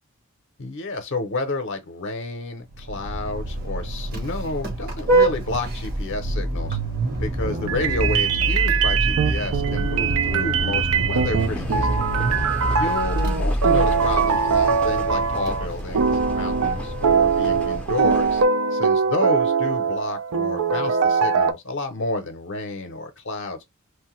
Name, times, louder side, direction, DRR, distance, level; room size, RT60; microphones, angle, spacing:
voice 1, 0.6-6.8 7.2-12.1 12.7-18.4 18.7-23.6, left 2 dB, 55° left, 0.6 m, -30 dB
Vehicle horn car horn honking, 2.7-18.1, right 1 dB, 40° right, 0.9 m, -27 dB
sound 1, 7.4-15.7 15.9-21.5, right 6 dB, 75° right, 0.4 m, -22 dB
sound 2, 11.4-18.5, left 1 dB, 5° left, 0.4 m, -36 dB
3.1 x 2.2 x 3.0 m
head